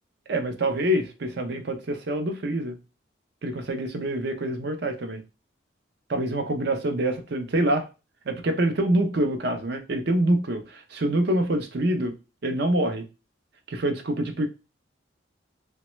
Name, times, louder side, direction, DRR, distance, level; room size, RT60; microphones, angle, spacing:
voice 1, 0.3-2.8 3.4-5.2 6.1-7.9 8.3-12.1 12.4-13.0 13.7-14.5, right 1 dB, 55° right, 6 dB, 0.5 m, -26 dB
3.0 x 2.2 x 3.0 m, 0.29 s
head